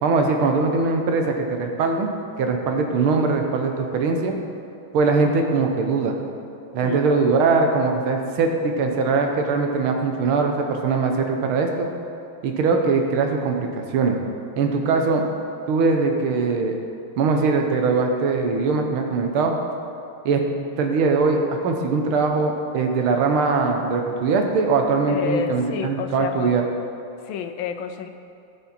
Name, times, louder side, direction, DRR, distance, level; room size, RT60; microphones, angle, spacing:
voice 1, 0.0-2.1 2.4-4.3 4.9-6.2 6.7-11.9 12.4-14.2 14.6-15.2 15.7-16.8 17.2-19.5 20.3-20.4 20.7-26.6, right 4 dB, 90° right, 3 dB, 1.9 m, -21 dB
voice 2, 25.1-26.5 27.2-28.1, left 7 dB, 75° left, 8 dB, 1.3 m, -29 dB
17.0 x 5.6 x 4.4 m, 2.7 s
omnidirectional pair, 2.3 m